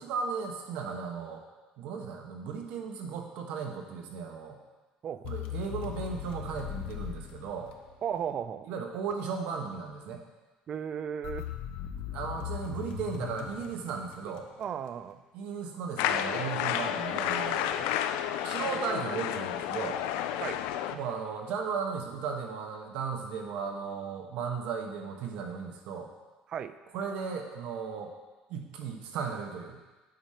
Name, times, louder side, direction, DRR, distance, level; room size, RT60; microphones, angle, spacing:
voice 1, 0.0-1.4 1.8-4.6 5.3-7.7 8.7-10.2 12.1-14.5 15.3-17.7 18.4-20.0 20.9-26.1 26.9-28.1 28.5-29.8, right 6 dB, 75° right, 3 dB, 1.1 m, -36 dB
sound 1, 5.2-8.2 11.2-14.7, left 10 dB, 70° left, 0.7 m, -39 dB
voice 2, 8.0-8.7 10.7-11.5 14.6-15.2 17.8-17.9 20.4-20.6 26.5-26.7, right 8 dB, 40° right, 13 dB, 0.4 m, -35 dB
sound 2, 16.0-21.0, left 10 dB, 90° left, 0.4 m, -31 dB
9.1 x 4.9 x 4.3 m, 1.2 s
cardioid pair, 130°, 2 cm